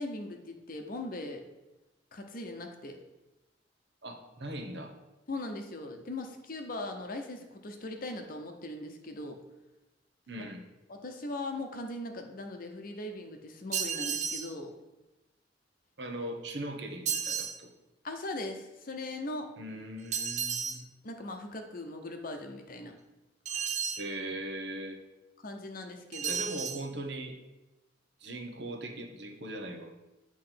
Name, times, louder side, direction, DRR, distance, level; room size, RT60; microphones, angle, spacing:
voice 1, 0.0-1.4 2.1-3.0 5.3-9.4 10.4-10.5 10.9-14.7 18.0-19.5 21.0-22.9 25.4-26.4, left 2 dB, 50° left, 4 dB, 0.7 m, -39 dB
voice 2, 4.0-4.9 10.3-10.6 16.0-17.7 19.6-20.9 24.0-25.0 26.2-27.3 28.2-29.9, right 1 dB, 65° right, 3 dB, 1.0 m, -39 dB
sound 1, 13.7-14.5 17.0-17.6 20.1-20.8 23.4-24.1 26.1-26.8, right 7 dB, 40° right, 0.5 m, -33 dB
8.6 x 3.1 x 5.7 m, 1.0 s
head